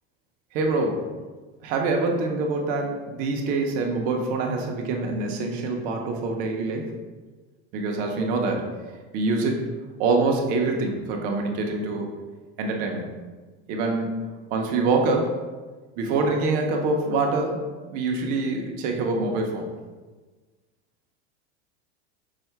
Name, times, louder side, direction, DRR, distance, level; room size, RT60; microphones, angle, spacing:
voice 1, 0.5-1.0 1.6-6.9 7.7-8.7 9.1-9.7 10.0-12.1 12.6-13.1 13.7-14.1 14.5-15.3 16.0-19.7, right 3 dB, 30° right, 1 dB, 0.4 m, -25 dB
5.4 x 2.0 x 4.4 m, 1.3 s
supercardioid pair, 170°, 31 cm